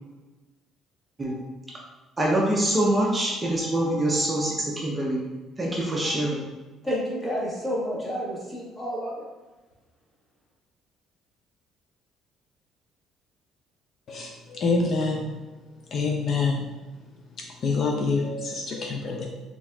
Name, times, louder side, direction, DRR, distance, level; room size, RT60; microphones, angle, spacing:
voice 1, 2.2-4.5 4.8-5.2 5.6-6.4, right 1 dB, 20° right, -3 dB, 0.6 m, -24 dB
voice 2, 6.8-9.2, equal, 10° left, -7 dB, 1.3 m, -30 dB
voice 3, 14.1-15.3 15.9-16.7 17.6-19.2, left 4 dB, 45° left, 0 dB, 0.4 m, -26 dB
4.0 x 3.5 x 2.3 m, 1.2 s
cardioid pair, 130°, 0 cm